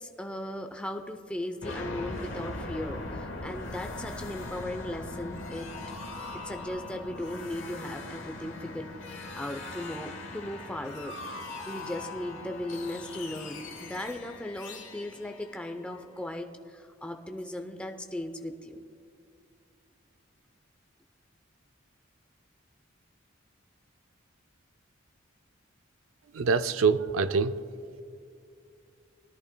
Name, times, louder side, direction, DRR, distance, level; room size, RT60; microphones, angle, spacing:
voice 1, 0.0-5.7 6.3-11.1 11.7-18.8, left 1 dB, 5° left, 4 dB, 0.6 m, -37 dB
sound 1, 1.6-16.3, left 2 dB, 65° left, 1.3 m, -40 dB
voice 2, 26.3-27.6, right 5 dB, 75° right, 12 dB, 0.5 m, -25 dB
20.0 x 11.0 x 2.2 m, 2.4 s
head